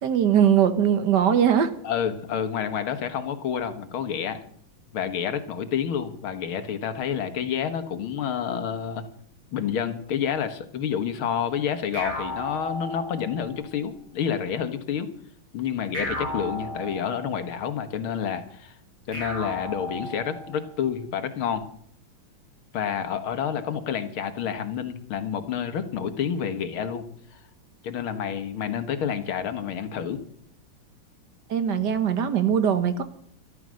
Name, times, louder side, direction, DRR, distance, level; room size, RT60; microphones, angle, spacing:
voice 1, 0.0-1.7 31.5-33.0, right 8 dB, 60° right, 11 dB, 1.5 m, -21 dB
voice 2, 1.8-4.4 4.9-9.0 9.5-15.1 15.5-18.8 19.1-21.6 22.7-27.0 27.3-27.4 27.8-30.2, left 8 dB, 80° left, 10 dB, 2.2 m, -29 dB
sound 1, 11.9-13.6 15.9-17.5 19.1-20.6, left 1 dB, 90° right, 8.7 m, -34 dB
13.0 x 13.0 x 6.3 m, 0.64 s
omnidirectional pair, 2.3 m